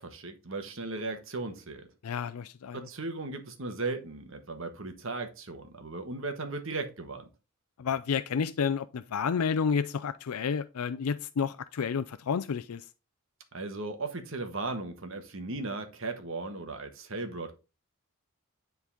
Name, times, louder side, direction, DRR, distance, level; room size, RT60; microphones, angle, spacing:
voice 1, 0.0-1.9 2.7-7.3 13.5-17.6, right 3 dB, 60° right, 1.3 m, -37 dB
voice 2, 2.0-2.9 7.8-12.9, left 6 dB, 80° left, 0.4 m, -30 dB
9.9 x 3.9 x 3.6 m
head